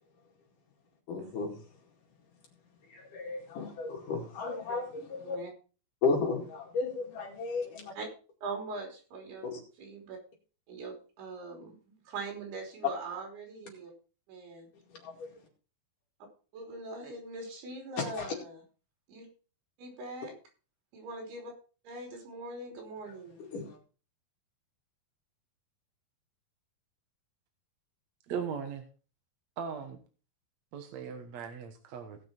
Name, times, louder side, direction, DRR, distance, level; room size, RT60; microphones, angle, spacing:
voice 1, 1.1-1.6 2.9-5.4 6.0-7.9 9.4-9.6 15.0-15.3 18.0-18.3 23.5-23.8, left 4 dB, 60° left, -1 dB, 3.6 m, -34 dB
voice 2, 8.4-9.5 9.8-10.2 10.7-13.9 14.3-14.7 16.5-18.6 19.1-19.3 19.8-20.3 20.9-21.5 21.9-23.4, right 3 dB, 85° right, 2 dB, 5.3 m, -42 dB
voice 3, 28.3-28.9 29.6-30.0 30.7-32.2, right 7 dB, 60° right, 5 dB, 1.9 m, -38 dB
18.0 x 6.0 x 4.4 m, 0.37 s
omnidirectional pair, 4.5 m